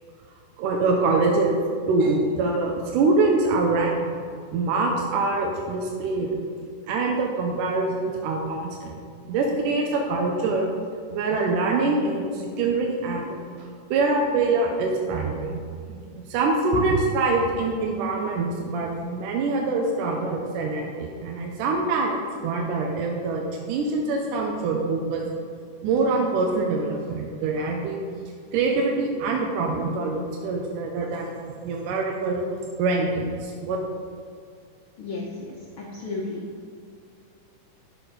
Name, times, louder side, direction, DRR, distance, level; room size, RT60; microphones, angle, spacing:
voice 1, 0.6-1.6 1.9-4.2 4.5-6.4 6.9-9.0 9.3-10.7 11.1-13.3 13.6-15.6 15.9-25.2 25.8-28.0 28.5-32.4 32.8-33.8, right 3 dB, 85° right, 0 dB, 2.3 m, -24 dB
voice 2, 35.0-36.4, left 3 dB, 80° left, -3 dB, 1.1 m, -33 dB
11.0 x 6.2 x 5.0 m, 2.3 s
omnidirectional pair, 3.7 m